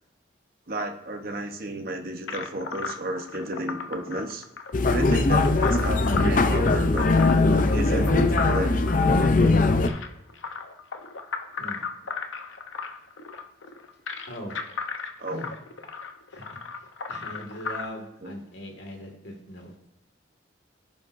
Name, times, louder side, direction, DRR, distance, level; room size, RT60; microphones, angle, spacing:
voice 1, 0.7-4.4 4.9-7.1 7.7-9.4 15.2-15.5 18.2-18.3, right 1 dB, 50° right, 4 dB, 1.0 m, -33 dB
sound 1, 2.3-17.8, left 5 dB, 90° left, 0.8 m, -35 dB
sound 2, 4.7-9.9, left 3 dB, 45° left, 0.5 m, -20 dB
voice 2, 14.3-14.6 15.3-15.5 16.3-16.5 16.8-19.7, equal, 65° left, 1 dB, 2.0 m, -40 dB
16.0 x 5.4 x 2.6 m, 0.88 s
head